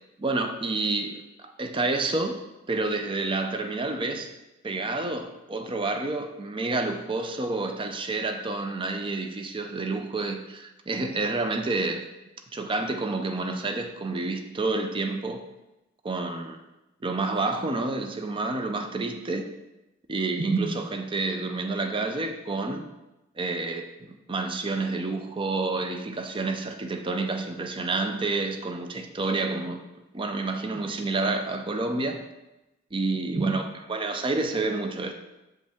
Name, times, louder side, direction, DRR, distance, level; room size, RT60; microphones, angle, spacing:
voice 1, 0.2-2.4 2.7-4.3 4.6-12.1 12.5-15.4 16.0-16.6 17.0-19.5 20.1-22.9 23.4-23.9 24.3-29.8 30.1-32.2 32.9-35.1, right 3 dB, 25° right, 6 dB, 0.5 m, -29 dB
7.8 x 5.2 x 3.5 m, 0.97 s
head